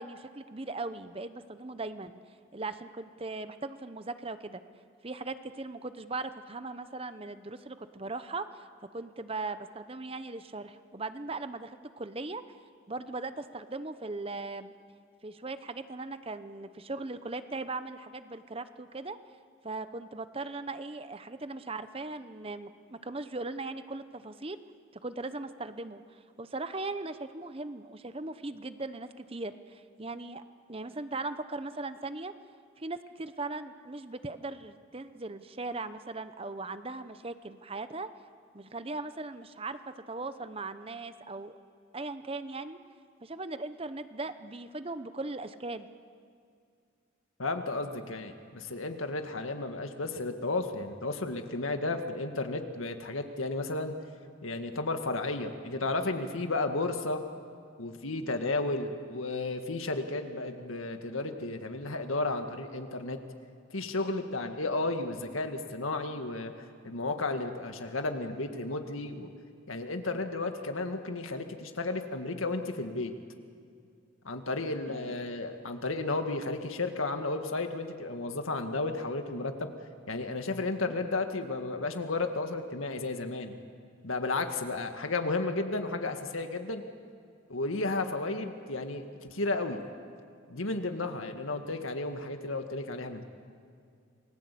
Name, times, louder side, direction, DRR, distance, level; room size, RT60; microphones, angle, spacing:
voice 1, 0.0-2.1 2.5-4.6 5.0-8.7 8.9-12.4 12.9-14.7 15.2-19.2 19.6-24.6 25.0-30.4 30.7-32.3 32.8-38.1 38.5-41.6 41.9-42.8 43.2-45.9 74.9-75.1, right 3 dB, 30° right, 11 dB, 0.8 m, -39 dB
voice 2, 47.4-53.9 54.4-57.2 57.8-63.2 63.7-66.5 66.8-69.3 69.7-73.1 74.2-79.7 80.1-83.6 84.0-86.8 87.5-89.8 90.5-93.2, left 2 dB, 90° left, 6 dB, 2.0 m, -33 dB
28.0 x 20.5 x 8.5 m, 2.3 s
head